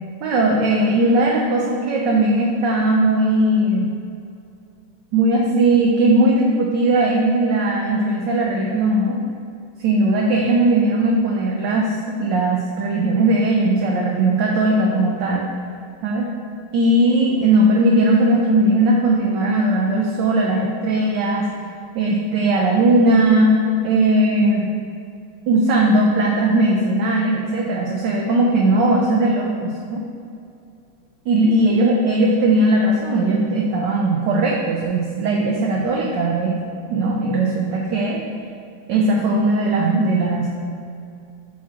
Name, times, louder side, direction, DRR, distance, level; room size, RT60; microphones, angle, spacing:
voice 1, 0.2-3.9 5.1-9.1 9.8-11.9 12.2-15.5 16.0-16.3 16.7-21.4 21.9-23.5 23.8-24.7 25.5-30.0 31.3-36.6 36.9-38.2 38.9-40.5, right 2 dB, 70° right, -1 dB, 1.2 m, -18 dB
7.2 x 3.0 x 5.8 m, 2.5 s
omnidirectional pair, 2.3 m